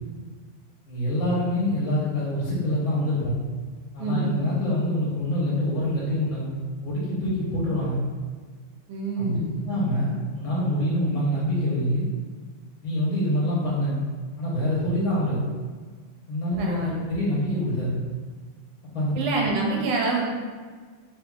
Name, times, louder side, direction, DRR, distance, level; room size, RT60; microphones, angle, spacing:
voice 1, 0.9-3.4 3.9-6.5 6.8-8.0 9.2-9.4 9.6-12.0 12.8-14.0 14.4-15.4 16.3-18.0 18.9-19.2, left 1 dB, 75° left, -7 dB, 1.6 m, -25 dB
voice 2, 4.0-4.4 8.9-9.6 16.6-17.0 19.1-20.3, right 2 dB, 90° right, -1 dB, 1.5 m, -26 dB
3.6 x 3.4 x 2.3 m, 1.5 s
omnidirectional pair, 2.2 m